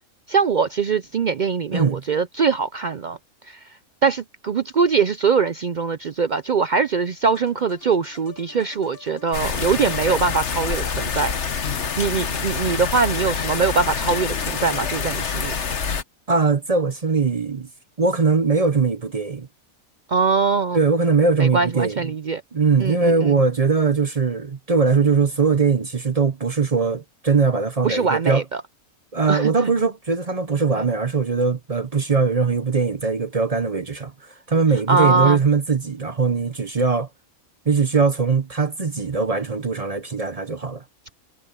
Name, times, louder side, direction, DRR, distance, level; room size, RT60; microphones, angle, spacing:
voice 1, 0.3-3.2 3.4-3.8 4.0-11.5 12.0-15.6 20.1-20.8 21.4-22.4 22.8-23.3 27.8-28.6 29.3-29.7 34.9-35.4, right 5 dB, 75° right, 0.4 m, -22 dB
voice 2, 1.7-2.0 16.3-17.7 18.0-19.5 20.7-22.1 22.5-28.4 29.1-37.1 37.7-40.8, right 4 dB, 35° right, 0.7 m, -21 dB
sound 1, 7.2-15.0, left 4 dB, 85° left, 2.2 m, -48 dB
sound 2, 9.3-16.0, left 6 dB, 50° left, 1.5 m, -26 dB
omnidirectional pair, 1.5 m